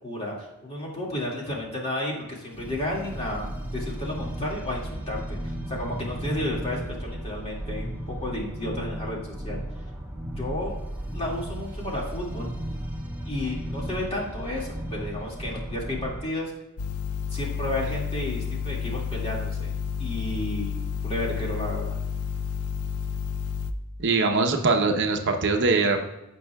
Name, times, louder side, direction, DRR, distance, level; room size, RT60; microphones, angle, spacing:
voice 1, 0.0-3.5 3.7-9.2 9.4-9.6 10.4-10.8 11.1-12.5 13.3-16.5 17.3-19.7 20.0-20.7 21.0-22.0, left 1 dB, 30° left, -2 dB, 2.2 m, -32 dB
sound 1, 2.5-16.2, right 1 dB, 10° right, 1.6 m, -35 dB
sound 2, 16.8-23.7, left 7 dB, 85° left, 0.5 m, -30 dB
voice 2, 24.0-26.0, right 3 dB, 55° right, 4 dB, 0.8 m, -22 dB
15.5 x 5.5 x 2.3 m, 0.97 s
head